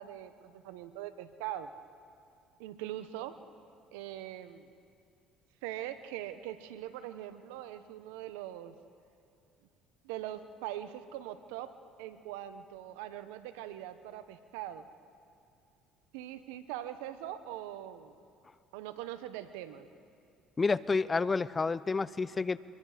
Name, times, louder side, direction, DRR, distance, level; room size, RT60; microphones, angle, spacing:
voice 1, 0.0-1.7 2.6-3.3 3.9-4.7 5.6-8.7 10.0-11.7 12.0-14.9 16.1-18.1 18.7-19.9, right 12 dB, 80° right, 11 dB, 1.0 m, -42 dB
voice 2, 20.6-22.6, left 4 dB, 25° left, 18 dB, 0.6 m, -29 dB
24.5 x 22.5 x 5.1 m, 2.5 s
supercardioid pair, 75°, 0 cm